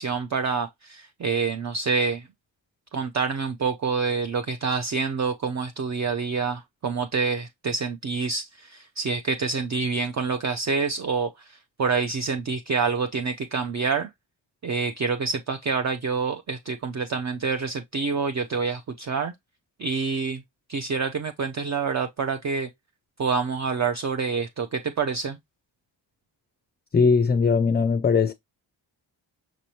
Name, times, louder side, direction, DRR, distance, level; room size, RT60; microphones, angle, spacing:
voice 1, 0.0-2.3 2.9-14.1 14.6-19.3 19.8-20.4 20.7-22.7 23.2-25.4, right 5 dB, 40° right, 0.5 m, -27 dB
voice 2, 26.9-28.3, left 5 dB, 25° left, 0.4 m, -20 dB
6.1 x 3.0 x 2.7 m
cardioid pair, 70°, 45 cm